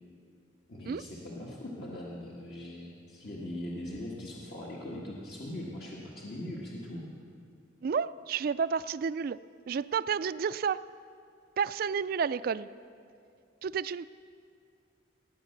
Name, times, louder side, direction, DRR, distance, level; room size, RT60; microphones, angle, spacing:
voice 1, 0.7-7.1, left 1 dB, 60° left, -4 dB, 1.6 m, -40 dB
voice 2, 7.8-9.4 9.7-10.8 11.6-12.7 13.6-14.1, right 6 dB, 55° right, 16 dB, 0.3 m, -30 dB
17.5 x 9.0 x 6.6 m, 2.4 s
head